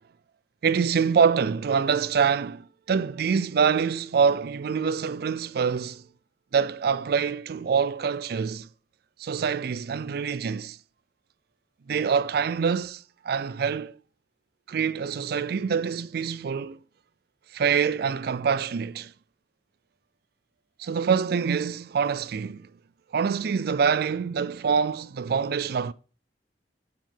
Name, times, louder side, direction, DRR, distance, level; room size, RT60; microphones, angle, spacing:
voice 1, 0.6-6.0 6.5-8.7 9.2-10.8 11.9-13.9 14.7-16.8 17.5-19.1 20.8-22.7 23.1-25.9, right 6 dB, 60° right, 0.4 m, -25 dB
7.0 x 4.6 x 5.7 m
head